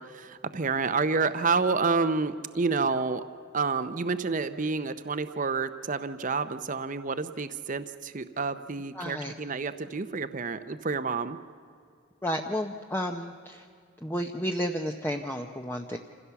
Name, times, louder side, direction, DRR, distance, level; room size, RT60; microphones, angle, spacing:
voice 1, 0.0-3.2 3.5-11.4, right 4 dB, 40° right, 11 dB, 0.7 m, -29 dB
voice 2, 8.9-9.3 12.2-13.7 14.0-16.0, equal, 10° left, 3 dB, 0.6 m, -32 dB
27.0 x 16.0 x 7.0 m, 2.3 s
head